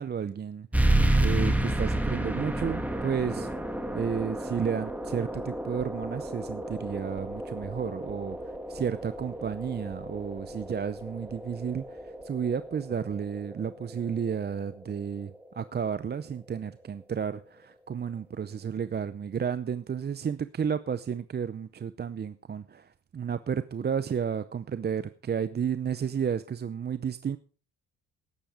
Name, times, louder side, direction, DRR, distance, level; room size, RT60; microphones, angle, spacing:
voice 1, 0.0-3.5 3.9-27.4, right 7 dB, 35° right, 13 dB, 0.7 m, -32 dB
sound 1, 0.7-15.8, right 1 dB, 5° right, 2.2 m, -31 dB
13.5 x 10.0 x 5.0 m, 0.39 s
cardioid pair, 90°, 30 cm